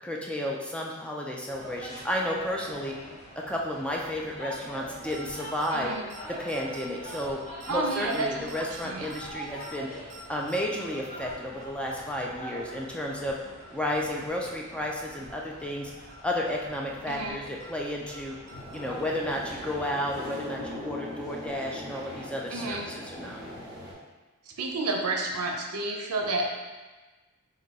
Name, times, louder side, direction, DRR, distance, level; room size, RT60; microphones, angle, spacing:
voice 1, 0.0-2.9 3.5-5.9 6.3-7.4 7.7-9.9 10.3-13.4 13.7-15.9 16.2-18.4 18.7-23.4, left 1 dB, 5° left, -1 dB, 0.4 m, -32 dB
sound 1, 1.5-19.9, right 1 dB, 35° left, 1.2 m, -45 dB
sound 2, 5.1-5.3 5.6-5.7 6.1-6.2 6.5-6.8 7.1-7.3 7.6-7.7 8.1-8.2 8.5-8.8 9.1-9.3 9.6-9.7 10.1-10.2 10.5-10.8 11.1-11.3 11.6-11.7 12.1-12.2 12.5-12.8 13.1-13.3 13.6-13.7 14.1-14.2 14.5-14.8 15.1-15.3 15.6-15.7 16.1-16.2 16.5-16.8 17.1-17.3 17.6-17.7 18.1-18.2 18.5-18.8 19.1-19.2, right 2 dB, 55° right, 0.9 m, -48 dB
voice 2, 5.7-6.0 7.7-9.1 17.1-17.4 22.5-22.9 24.6-26.5, right 2 dB, 75° right, 1 dB, 0.6 m, -30 dB
sound 3, 18.5-23.9, left 1 dB, 20° right, 1.1 m, -40 dB
5.2 x 2.2 x 4.0 m, 1.2 s
head